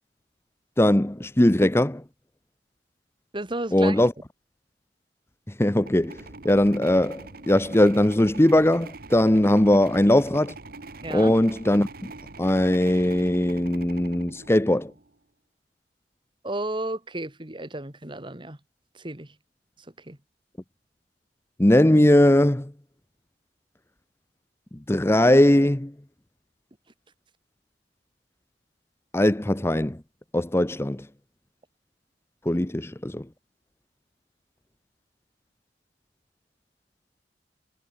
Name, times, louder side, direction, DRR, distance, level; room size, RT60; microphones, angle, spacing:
voice 1, 0.8-2.0 3.7-4.1 5.6-10.5 11.1-11.9 12.4-14.9 21.6-22.7 24.9-25.9 29.1-30.0 30.3-31.1 32.5-33.2, left 1 dB, 15° left, 0.8 m, -20 dB
voice 2, 3.3-4.1 11.0-11.4 16.4-18.6 18.9-19.4 20.0-20.2, right 2 dB, 25° right, 2.1 m, -33 dB
sound 1, 5.7-15.1, right 3 dB, 55° right, 1.7 m, -43 dB
head